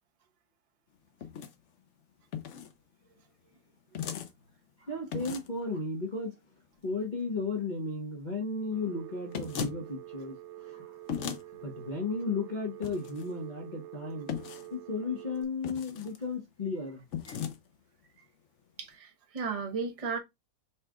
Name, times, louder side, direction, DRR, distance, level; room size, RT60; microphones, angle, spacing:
sound 1, 1.2-1.5 2.3-2.7 4.0-4.3 5.1-5.6 9.3-9.8 11.1-11.4 12.8-13.3 14.3-14.7 15.6-16.2 17.1-17.6, left 8 dB, 80° left, 0.6 m, -36 dB
voice 1, 4.8-6.4 6.8-10.9 11.6-14.3 14.7-17.4, left 3 dB, 40° left, 0.6 m, -34 dB
Telephone, 8.7-15.4, right 14 dB, 85° right, 1.3 m, -47 dB
voice 2, 18.8-20.2, right 5 dB, 30° right, 0.6 m, -34 dB
5.6 x 2.3 x 3.5 m
omnidirectional pair, 2.0 m